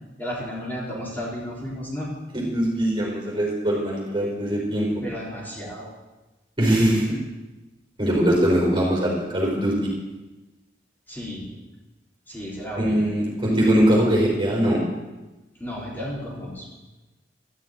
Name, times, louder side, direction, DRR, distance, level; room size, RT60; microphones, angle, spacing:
voice 1, 0.2-2.1 5.0-5.9 11.1-11.4 12.3-13.1 15.6-16.7, equal, 10° left, -7 dB, 4.4 m, -33 dB
voice 2, 2.3-4.9 6.6-7.0 8.0-9.7 12.8-14.8, right 1 dB, 30° right, -3 dB, 4.7 m, -21 dB
13.5 x 7.7 x 9.4 m, 1.1 s
head